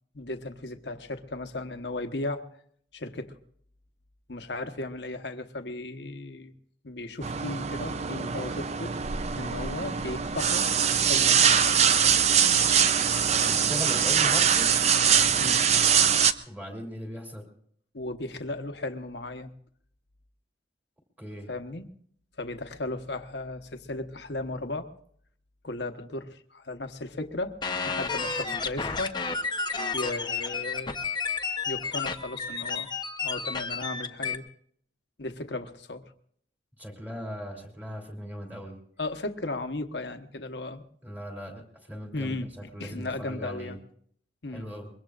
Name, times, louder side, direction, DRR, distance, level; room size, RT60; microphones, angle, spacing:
voice 1, 0.1-2.5 2.9-3.3 4.3-6.5 6.8-8.9 9.4-11.9 15.4-15.7 17.9-19.5 21.5-21.9 22.4-24.9 25.6-27.5 27.9-29.2 29.9-31.0 31.6-32.9 33.2-34.4 35.2-36.0 39.0-40.8 42.1-43.8 44.4-44.7, left 2 dB, 70° left, 7 dB, 1.1 m, -35 dB
sound 1, 7.2-16.3, right 7 dB, 35° right, 0.5 m, -23 dB
voice 2, 13.4-14.7 15.1-15.3 16.5-17.4 21.2-21.5 36.8-38.7 41.0-42.4 42.7-43.7 44.5-44.9, equal, 10° right, 1 dB, 3.1 m, -38 dB
sound 2, 27.6-34.4, left 5 dB, 25° left, 0.8 m, -31 dB
23.5 x 22.5 x 2.5 m, 0.64 s
head